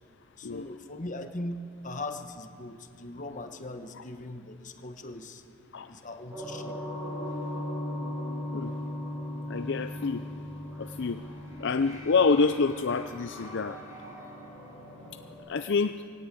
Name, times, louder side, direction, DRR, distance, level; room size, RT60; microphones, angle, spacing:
voice 1, 0.4-5.4 5.9-6.8, left 2 dB, 40° left, 6 dB, 1.3 m, -39 dB
sound 1, 6.3-15.3, left 1 dB, 15° right, 6.1 m, -38 dB
voice 2, 9.5-10.2 10.8-11.2 11.6-13.8 15.5-16.0, left 4 dB, 60° left, 9 dB, 0.5 m, -27 dB
22.0 x 18.0 x 8.5 m, 2.7 s
head